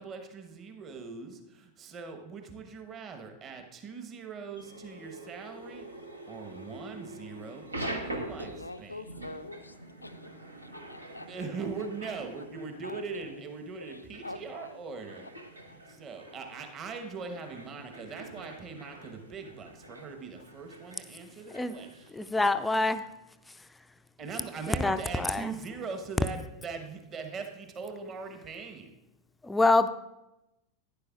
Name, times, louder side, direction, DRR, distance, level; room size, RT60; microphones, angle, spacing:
voice 1, 0.0-5.9 6.3-8.5 8.8-9.0 11.3-15.3 15.9-22.1 24.2-28.9, right 4 dB, 30° right, 5 dB, 1.0 m, -41 dB
sound 1, 4.6-22.1, right 1 dB, 85° right, 0.9 m, -45 dB
voice 2, 8.4-11.5 11.8-11.9 12.4-12.5 12.8-13.4 13.8-14.8 15.2-15.3 15.7-15.8, left 2 dB, 85° left, 11 dB, 0.4 m, -46 dB
voice 3, 22.1-23.1 23.5-23.6 24.7-25.6 29.4-29.9, left 2 dB, 10° left, 11 dB, 0.4 m, -26 dB
11.5 x 10.0 x 2.4 m, 0.93 s
figure-of-eight pair, 90°, 0 cm